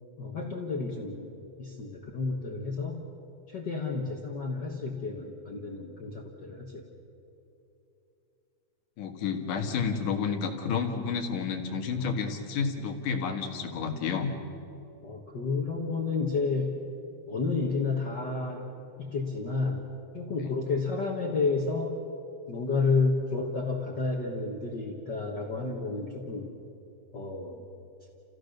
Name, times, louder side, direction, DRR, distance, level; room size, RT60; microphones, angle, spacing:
voice 1, 0.2-3.0 3.5-6.8 15.0-16.8 17.3-18.7 19.0-19.9 20.1-22.0 22.5-26.5 27.1-27.7, left 4 dB, 45° left, 0 dB, 1.5 m, -31 dB
voice 2, 9.0-14.3, left 5 dB, 90° left, 4 dB, 3.2 m, -30 dB
29.5 x 16.0 x 6.6 m, 2.8 s
omnidirectional pair, 3.5 m